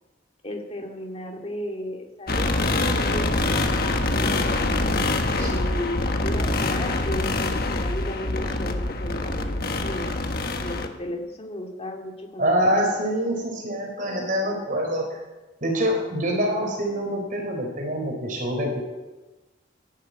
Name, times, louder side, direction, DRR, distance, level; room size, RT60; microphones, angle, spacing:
voice 1, 0.4-4.7 5.4-10.1 10.6-12.9, left 1 dB, 35° left, 2 dB, 2.3 m, -35 dB
sound 1, 2.3-10.9, left 2 dB, 55° left, 1.4 m, -25 dB
voice 2, 12.4-15.2 15.6-18.8, equal, 45° right, 1 dB, 4.3 m, -25 dB
12.5 x 11.5 x 9.4 m, 1.1 s
head